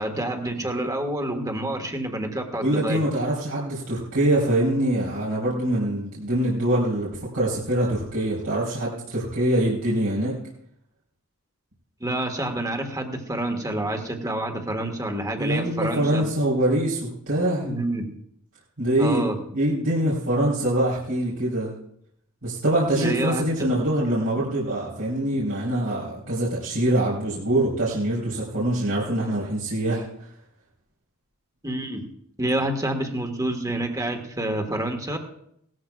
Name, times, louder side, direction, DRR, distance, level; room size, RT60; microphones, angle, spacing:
voice 1, 0.0-3.0 12.0-16.2 17.6-18.1 19.0-19.4 23.0-23.4 31.6-32.0 32.4-35.2, right 1 dB, 15° right, 4 dB, 1.7 m, -28 dB
voice 2, 2.6-10.3 15.4-17.7 18.8-21.7 22.4-30.0, right 1 dB, 80° right, -8 dB, 4.2 m, -24 dB
18.5 x 14.0 x 2.4 m, 0.72 s
head